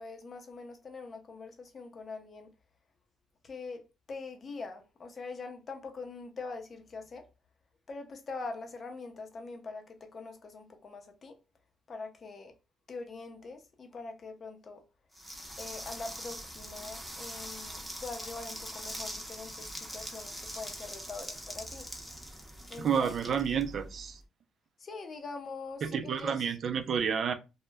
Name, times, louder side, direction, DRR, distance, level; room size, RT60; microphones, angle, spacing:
voice 1, 0.0-2.5 3.4-3.8 4.1-7.3 7.9-11.3 11.9-12.5 12.9-14.8 15.6-21.9 22.7-23.1 24.8-26.5, left 3 dB, 45° left, 0.6 m, -43 dB
sound 1, 15.1-24.1, equal, ahead, 0.7 m, -43 dB
voice 2, 22.8-24.2 25.8-27.3, right 7 dB, 60° right, 0.4 m, -30 dB
2.2 x 2.0 x 3.3 m
cardioid pair, 90°, 0 cm